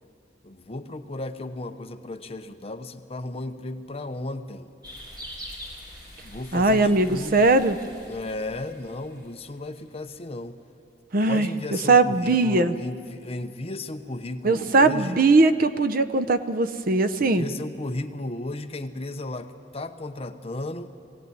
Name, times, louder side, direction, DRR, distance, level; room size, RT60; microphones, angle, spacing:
voice 1, 0.4-4.7 6.2-7.5 8.0-10.6 11.2-15.2 17.2-21.0, left 2 dB, 35° left, 8 dB, 0.8 m, -34 dB
sound 1, 4.8-9.8, equal, 25° right, 4.0 m, -43 dB
voice 2, 6.5-7.8 11.1-11.5 11.9-12.8 14.4-17.5, right 3 dB, 50° right, 12 dB, 0.7 m, -20 dB
21.5 x 16.5 x 9.4 m, 2.5 s
head